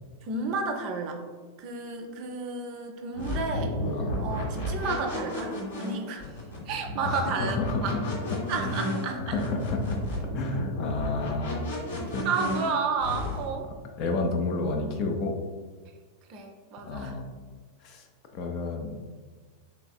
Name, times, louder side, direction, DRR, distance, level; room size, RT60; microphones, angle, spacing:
voice 1, 0.2-1.2 1.6-3.7 4.2-6.3 6.7-8.0 8.5-9.4 12.2-13.7 16.3-17.2, right 4 dB, 40° right, 4 dB, 0.4 m, -32 dB
sound 1, 3.1-13.5, left 1 dB, 60° left, 0.8 m, -33 dB
voice 2, 3.9-4.2 7.0-8.0 8.6-10.0 10.3-12.3 14.0-15.4 16.9-17.3 17.8-18.0 18.3-18.9, left 3 dB, 40° left, 3 dB, 0.4 m, -30 dB
3.3 x 3.2 x 2.2 m, 1.5 s
figure-of-eight pair, 90°, 0 cm